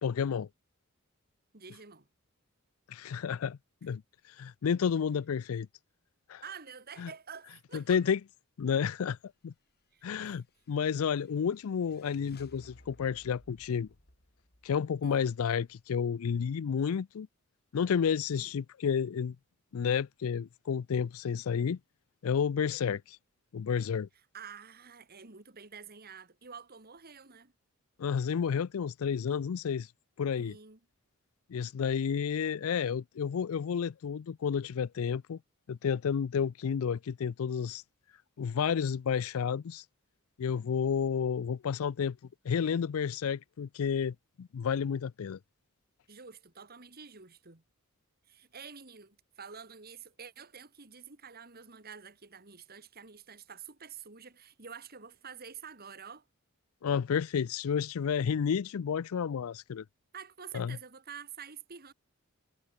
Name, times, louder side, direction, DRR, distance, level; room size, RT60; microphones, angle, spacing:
voice 1, 0.0-0.5 2.9-4.0 4.3-5.7 6.3-6.4 7.0-7.1 7.7-8.2 8.6-9.2 9.4-9.5 10.0-13.9 14.6-17.3 17.7-19.4 19.7-21.8 22.2-23.2 23.5-24.1 28.0-29.9 30.2-30.5 31.5-35.4 35.7-37.8 38.4-39.8 40.4-42.2 42.4-45.4 56.8-59.8 60.5-60.8, left 7 dB, 70° left, 0.4 m, -31 dB
voice 2, 1.5-2.1 6.4-8.0 9.9-10.4 15.0-15.2 18.4-18.5 24.3-27.5 30.4-30.8 46.1-47.6 48.3-56.3 60.1-61.9, right 6 dB, 45° right, 2.5 m, -48 dB
sound 1, 10.2-15.8, left 1 dB, 45° left, 5.1 m, -59 dB
head